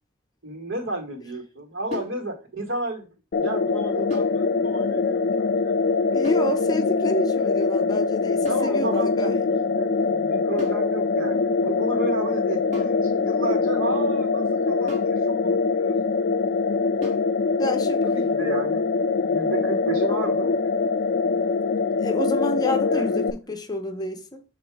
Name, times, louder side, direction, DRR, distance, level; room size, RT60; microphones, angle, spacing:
voice 1, 0.4-3.1 3.4-6.1 8.5-9.3 9.6-15.9 18.0-20.8 22.9-23.3, right 2 dB, 85° right, 1.8 m, -33 dB
sound 1, 1.9-2.2 4.1-4.4 6.2-6.5 8.4-8.8 10.6-10.9 12.7-13.0 14.9-15.2 17.0-17.3, left 5 dB, 35° right, 2.3 m, -34 dB
sound 2, 3.3-23.3, left 4 dB, 50° left, 0.4 m, -23 dB
voice 2, 6.1-9.4 17.6-18.0 22.0-24.4, equal, 20° left, 0.7 m, -28 dB
6.7 x 3.0 x 4.7 m
head